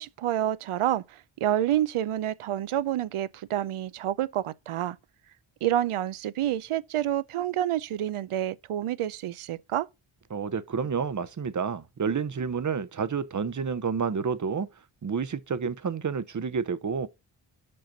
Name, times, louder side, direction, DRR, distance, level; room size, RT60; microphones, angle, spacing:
voice 1, 0.0-5.0 5.6-9.9, right 12 dB, 85° right, 0.6 m, -28 dB
voice 2, 10.3-14.7 15.0-17.1, right 6 dB, 40° right, 0.7 m, -29 dB
5.8 x 5.4 x 5.1 m
cardioid pair, 65°, 49 cm